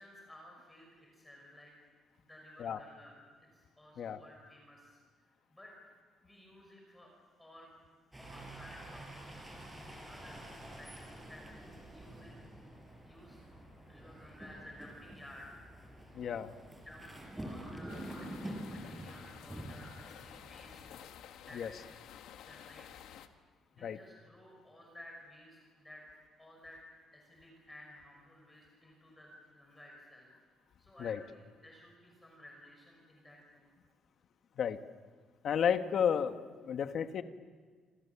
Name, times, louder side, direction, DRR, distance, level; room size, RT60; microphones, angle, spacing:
voice 1, 0.0-1.7 2.3-5.0 5.5-5.7 6.2-7.1 7.4-7.7 8.2-9.2 10.1-10.9 11.3-12.3 13.0-13.4 13.9-15.6 16.2-16.4 16.8-17.1 17.3-20.9 21.4-21.8 22.4-23.1 23.7-26.1 26.4-26.8 27.1-30.3 30.8-33.7, left 1 dB, 10° left, -1 dB, 5.7 m, -55 dB
sound 1, 8.1-21.1, right 1 dB, 10° right, 4.9 m, -48 dB
voice 2, 16.1-16.5 21.5-21.7 23.8-24.0 31.0-31.2 34.6-34.8 35.4-36.4 36.6-37.2, left 8 dB, 50° left, 8 dB, 1.4 m, -32 dB
sound 2, 17.9-23.3, left 10 dB, 80° left, 1.6 m, -52 dB
28.0 x 27.5 x 7.1 m, 1.5 s
cardioid pair, 155°, 0 cm